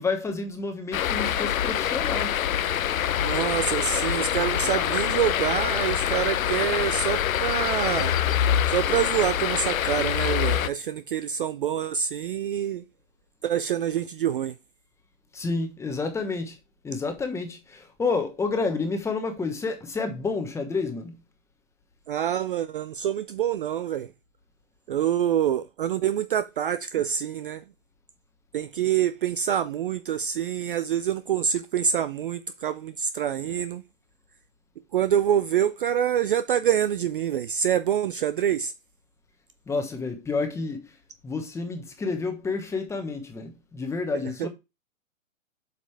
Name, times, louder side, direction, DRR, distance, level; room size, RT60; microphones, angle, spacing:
voice 1, 0.0-2.4 15.3-16.6 16.8-21.1 39.7-40.9 41.2-44.5, left 4 dB, 5° left, 1.1 m, -29 dB
sound 1, 0.9-10.7, left 10 dB, 80° left, 0.8 m, -25 dB
voice 2, 3.2-8.2 8.7-12.8 13.4-14.5 22.1-24.1 24.9-27.6 28.5-33.8 34.9-38.7 44.4-44.5, right 9 dB, 40° right, 0.4 m, -26 dB
7.8 x 5.4 x 3.3 m
hypercardioid pair, 145°, 41 cm